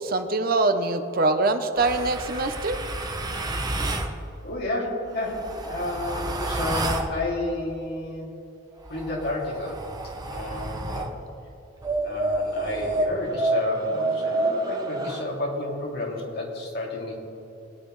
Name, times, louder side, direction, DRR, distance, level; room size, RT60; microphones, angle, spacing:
voice 1, 0.0-2.8, right 3 dB, 50° right, 8 dB, 0.7 m, -24 dB
sound 1, 1.8-4.1 5.1-7.1 8.8-11.1 11.8-15.2, right 2 dB, 20° right, 0.9 m, -29 dB
voice 2, 4.4-8.3 8.9-9.9 10.3-11.1 12.0-17.1, left 2 dB, 60° left, -3 dB, 2.6 m, -31 dB
21.0 x 9.7 x 3.2 m, 2.9 s
head